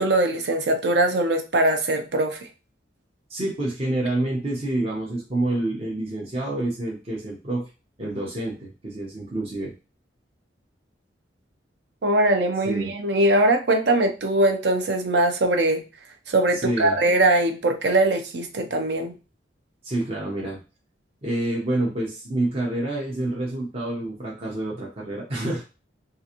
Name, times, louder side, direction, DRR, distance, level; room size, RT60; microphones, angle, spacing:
voice 1, 0.0-2.4 12.0-15.8 16.3-19.1, right 1 dB, 65° right, 5 dB, 0.7 m, -21 dB
voice 2, 3.3-7.7 8.0-9.7 12.6-12.9 16.5-17.0 19.8-20.6 21.2-25.6, right 1 dB, 35° right, -3 dB, 0.8 m, -28 dB
3.8 x 2.5 x 2.9 m, 0.31 s
head